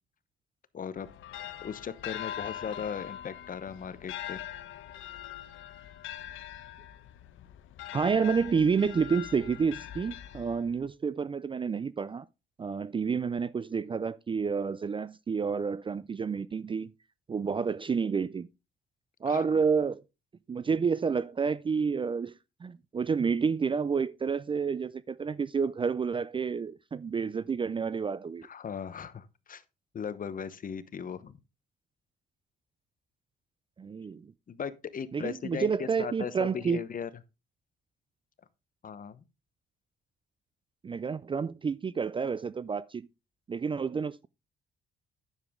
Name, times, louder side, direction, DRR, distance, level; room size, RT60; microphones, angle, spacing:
voice 1, 0.7-1.1 1.6-4.4 19.3-19.5 28.4-29.6 29.9-31.4 34.5-37.1 38.8-39.2, left 7 dB, 45° left, 0.9 m, -38 dB
sound 1, 1.0-10.9, left 11 dB, 80° left, 0.9 m, -42 dB
voice 2, 7.9-12.3 12.6-16.9 17.3-18.5 19.2-20.0 20.5-22.3 22.6-28.5 33.8-34.3 35.1-36.8 40.8-43.1 43.5-44.3, right 5 dB, 25° right, 0.4 m, -29 dB
9.9 x 7.1 x 3.7 m
cardioid pair, 90°, 20 cm